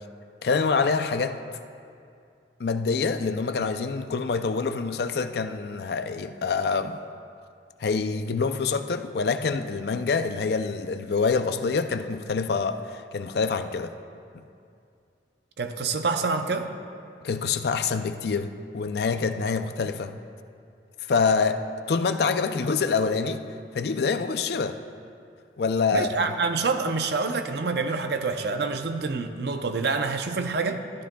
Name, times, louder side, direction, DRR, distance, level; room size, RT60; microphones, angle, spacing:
voice 1, 0.4-1.4 2.6-7.0 7.8-13.9 17.2-20.1 21.1-21.6 21.9-23.4 23.7-24.8 25.6-26.1, left 5 dB, 60° left, 9 dB, 0.4 m, -26 dB
voice 2, 15.6-16.7 25.9-30.8, right 4 dB, 60° right, 7 dB, 0.6 m, -27 dB
13.5 x 12.5 x 2.3 m, 2.4 s
head